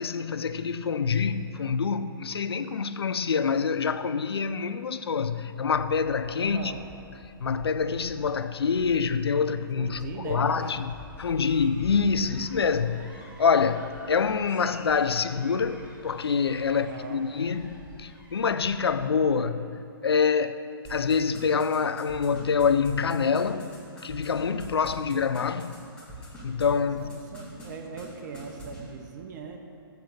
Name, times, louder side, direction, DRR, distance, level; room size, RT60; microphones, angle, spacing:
voice 1, 0.0-6.7 7.4-10.9 11.2-25.7 26.4-27.1, left 5 dB, 90° left, 0.4 m, -26 dB
sound 1, 5.7-19.4, left 7 dB, 30° left, 0.4 m, -50 dB
voice 2, 6.3-6.8 9.8-10.7 16.7-17.3 27.0-29.6, right 6 dB, 50° right, 0.7 m, -40 dB
sound 2, 10.5-19.1, right 1 dB, 10° right, 1.1 m, -52 dB
sound 3, 20.8-26.6 27.0-27.7 28.0-28.1 28.3-28.8, equal, 5° left, 2.0 m, -44 dB
8.1 x 4.0 x 6.5 m
hypercardioid pair, 130°, 13 cm